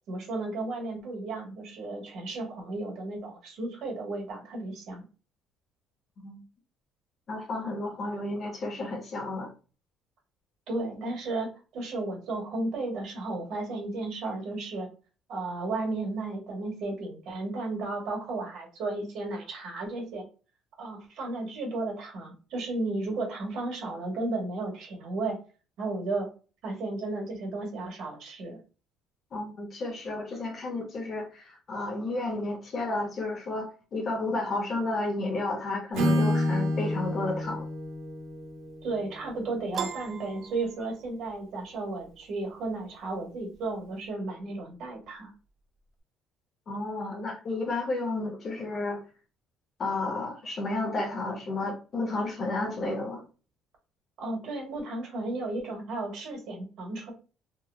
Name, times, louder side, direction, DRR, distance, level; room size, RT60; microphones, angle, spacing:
voice 1, 0.1-5.0 10.7-14.9 15.3-20.2 20.8-25.4 25.8-26.3 26.6-28.6 38.8-45.3 54.2-57.1, right 2 dB, 60° right, 1.2 m, -34 dB
voice 2, 7.3-9.5 29.3-37.7 46.7-49.0 49.8-53.2, left 2 dB, 35° left, 0.7 m, -32 dB
Acoustic guitar / Strum, 35.9-39.9, left 1 dB, 85° right, 0.9 m, -29 dB
Piano, 39.7-41.3, right 6 dB, 40° right, 0.3 m, -38 dB
2.8 x 2.3 x 2.3 m
cardioid pair, 150°, 0 cm